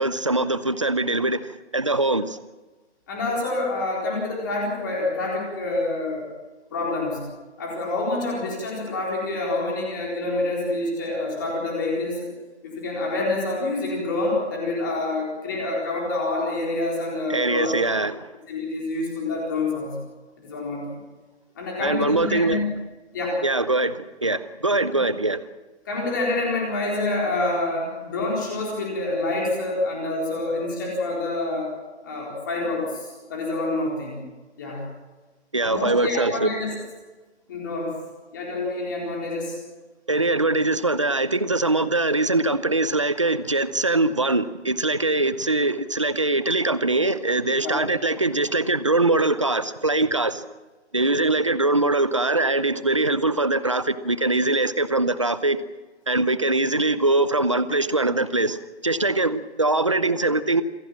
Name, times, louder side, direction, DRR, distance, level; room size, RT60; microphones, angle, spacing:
voice 1, 0.0-2.4 17.3-18.3 21.8-22.6 23.4-25.4 35.5-36.5 40.1-50.4 50.9-55.6 56.1-60.6, right 2 dB, 25° right, 0.7 m, -22 dB
voice 2, 3.1-6.2 6.7-7.2 7.6-12.3 12.6-17.7 18.5-19.9 20.4-21.0 21.6-22.6 23.1-23.4 24.9-25.0 25.9-31.7 32.0-34.2 34.6-34.8 35.6-36.7 37.5-38.0 38.3-39.6 47.6-47.8, left 2 dB, 15° left, 4.1 m, -27 dB
27.0 x 16.5 x 7.5 m
hypercardioid pair, 175°, 35 cm